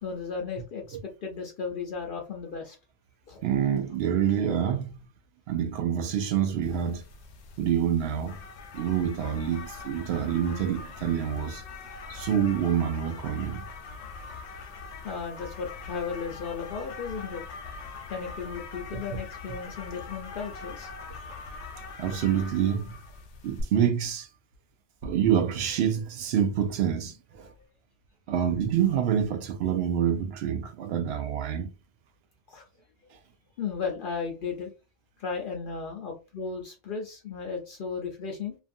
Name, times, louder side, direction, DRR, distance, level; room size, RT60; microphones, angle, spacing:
voice 1, 0.0-2.8 3.3-3.4 10.2-10.6 15.0-17.4 18.1-20.9 32.5-32.6 33.6-34.7 35.2-38.6, left 5 dB, 60° left, 0.6 m, -35 dB
voice 2, 3.4-4.9 5.5-7.0 7.6-8.4 8.7-11.6 12.1-13.6 18.9-19.0 22.0-22.9 23.4-24.3 25.0-27.5 28.3-31.7, right 9 dB, 70° right, 0.8 m, -27 dB
sound 1, 6.6-23.6, left 4 dB, 85° left, 0.9 m, -42 dB
2.5 x 2.4 x 2.5 m
omnidirectional pair, 1.2 m